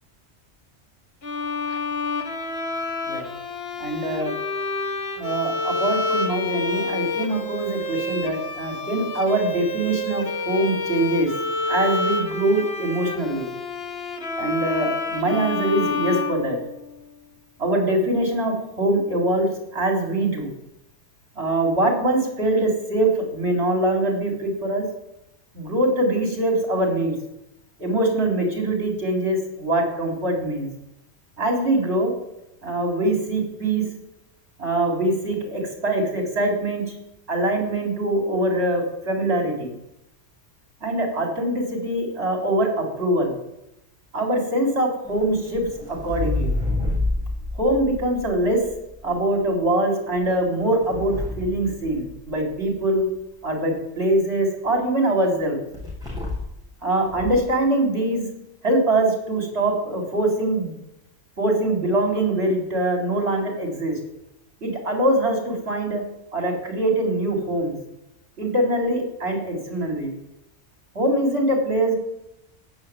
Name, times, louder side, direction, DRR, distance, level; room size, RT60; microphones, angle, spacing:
Bowed string instrument, 1.2-17.1, left 3 dB, 60° left, 1.6 m, -28 dB
voice 1, 3.8-4.3 5.2-11.3 11.7-13.5 14.4-16.6 17.6-20.5 21.3-24.8 25.5-27.1 27.8-30.7 31.4-32.1 32.6-33.8 34.6-36.8 37.3-39.7 40.8-43.4 44.1-46.6 47.6-48.6 49.0-53.1 53.4-55.6 56.8-58.3 58.6-60.7 61.4-64.0 64.6-66.0 66.3-67.7 68.4-70.1 70.9-72.0, right 1 dB, 65° right, 1 dB, 4.1 m, -23 dB
sound 1, 45.0-49.1 50.1-52.4 55.7-56.6 57.0-57.5, left 2 dB, 5° right, 6.6 m, -29 dB
17.5 x 7.9 x 7.5 m, 0.87 s
omnidirectional pair, 1.2 m